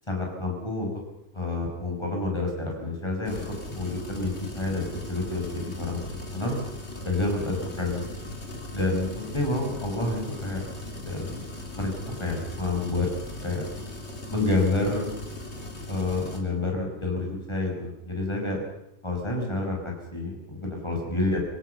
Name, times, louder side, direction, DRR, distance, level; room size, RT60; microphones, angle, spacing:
voice 1, 0.1-0.9 1.3-4.8 5.1-6.6 7.0-8.0 8.7-10.7 11.0-11.4 11.7-13.1 13.4-13.7 14.3-15.1 15.9-17.2 17.5-18.6 19.0-21.4, left 2 dB, 25° left, 1 dB, 6.1 m, -29 dB
sound 1, 3.2-16.4, left 1 dB, 70° left, 3.5 m, -39 dB
26.0 x 17.0 x 7.1 m, 0.82 s
omnidirectional pair, 1.2 m